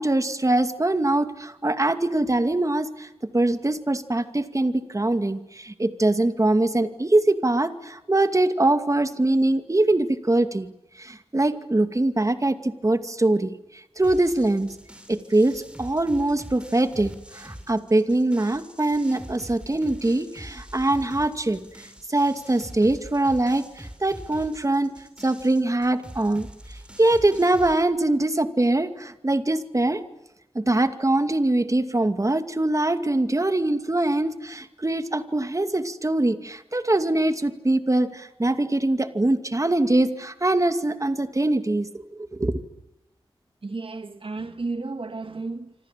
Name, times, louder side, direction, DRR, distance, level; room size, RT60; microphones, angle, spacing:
voice 1, 0.0-10.7 11.0-14.8 15.1-21.6 22.1-24.9 25.2-30.0 30.5-42.0 42.4-42.6, right 2 dB, 35° right, 2.4 m, -23 dB
sound 1, 14.0-27.7, equal, 10° right, 6.9 m, -44 dB
voice 2, 43.6-45.7, right 3 dB, 65° right, 2.1 m, -33 dB
27.0 x 26.5 x 7.6 m
wide cardioid pair, 55°, 10 cm